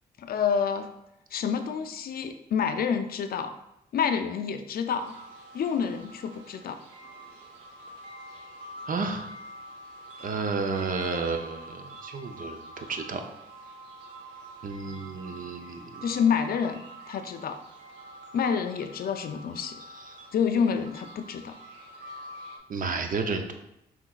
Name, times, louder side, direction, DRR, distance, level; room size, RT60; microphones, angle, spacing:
voice 1, 0.2-0.9 1.3-3.5 3.9-5.1 5.5-6.8 16.0-17.6 18.3-19.8 20.3-21.6, left 7 dB, 60° left, 8 dB, 0.4 m, -28 dB
sound 1, 5.0-22.6, right 1 dB, 85° right, 0.7 m, -46 dB
voice 2, 8.9-9.3 10.2-13.2 14.6-16.0 19.9-20.2 22.7-23.5, right 4 dB, 50° right, 5 dB, 0.6 m, -32 dB
5.6 x 3.2 x 2.4 m, 0.84 s
supercardioid pair, 50°, 18 cm